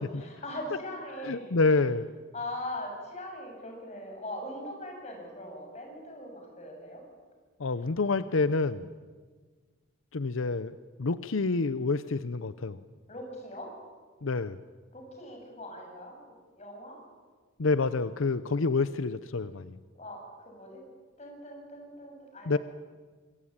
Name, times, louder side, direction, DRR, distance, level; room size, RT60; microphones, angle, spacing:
voice 1, 0.2-1.5 2.3-7.0 13.1-13.7 14.9-17.0 19.9-20.8 21.2-22.6, left 1 dB, 35° left, 1 dB, 7.7 m, -41 dB
voice 2, 1.2-2.1 7.6-8.9 10.1-12.8 14.2-14.6 17.6-19.8 22.5-22.6, left 3 dB, 85° left, 14 dB, 0.7 m, -28 dB
25.5 x 22.5 x 8.8 m, 1.5 s
head